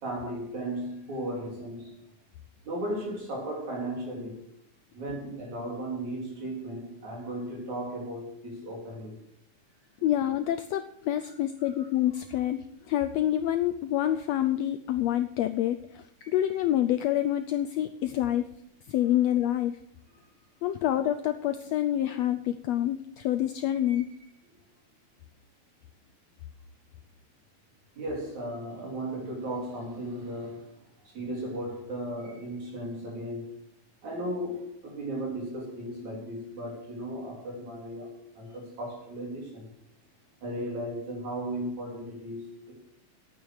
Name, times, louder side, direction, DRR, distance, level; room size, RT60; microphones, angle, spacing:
voice 1, 0.0-2.0 2.6-4.5 4.9-9.1 10.0-10.1 11.6-11.9 16.2-16.4 23.7-24.0 28.0-30.7 31.0-33.6 34.0-39.7 40.4-42.7, right 1 dB, 65° right, 4.9 m, -36 dB
voice 2, 10.0-18.5 18.9-19.7 20.6-24.1, left 12 dB, 80° left, 1.5 m, -27 dB
11.0 x 9.1 x 6.4 m
omnidirectional pair, 3.5 m